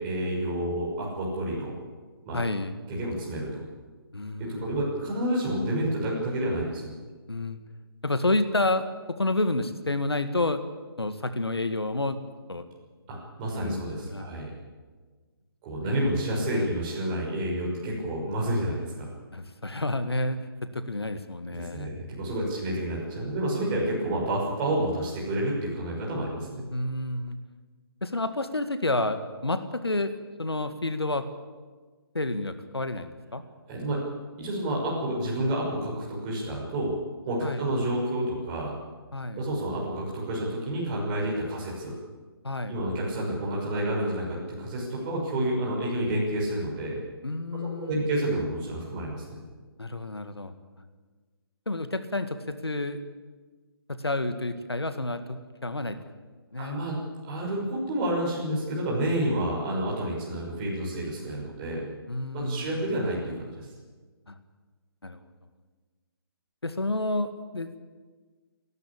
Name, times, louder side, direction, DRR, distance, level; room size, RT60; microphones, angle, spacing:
voice 1, 0.0-1.7 2.3-2.4 2.9-3.6 4.4-6.9 13.1-14.5 15.6-19.1 21.5-26.6 33.7-34.0 34.4-37.0 37.3-38.7 39.4-41.9 42.7-47.0 47.7-49.4 56.6-57.0 57.3-61.9 62.3-63.7, right 1 dB, 25° right, -4 dB, 6.1 m, -29 dB
voice 2, 2.3-2.8 4.1-4.9 7.3-7.6 8.0-10.6 11.0-12.2 12.5-12.7 13.6-14.3 15.9-16.7 19.3-21.9 22.3-22.5 26.7-27.4 28.0-30.1 30.4-31.3 32.1-33.4 37.4-37.7 39.1-39.5 42.4-42.8 47.2-48.1 49.8-50.5 51.7-53.0 53.9-56.0 56.5-56.8 62.1-62.9 64.3-64.4 65.0-65.2 66.6-67.7, left 2 dB, 85° left, 9 dB, 2.0 m, -30 dB
28.5 x 12.0 x 8.7 m, 1.4 s
figure-of-eight pair, 145°, 13 cm